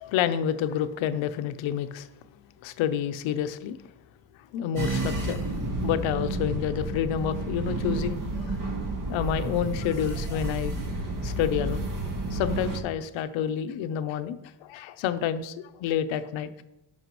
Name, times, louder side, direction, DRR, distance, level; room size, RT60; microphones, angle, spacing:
voice 1, 0.0-2.1 2.6-3.8 4.5-5.4 5.8-8.6 9.1-10.9 11.2-11.9 12.3-16.5, left 9 dB, 80° left, 10 dB, 0.8 m, -29 dB
sound 1, 4.8-12.8, right 2 dB, 45° right, 1.7 m, -31 dB
13.5 x 5.6 x 3.1 m, 0.88 s
cardioid pair, 100°, 46 cm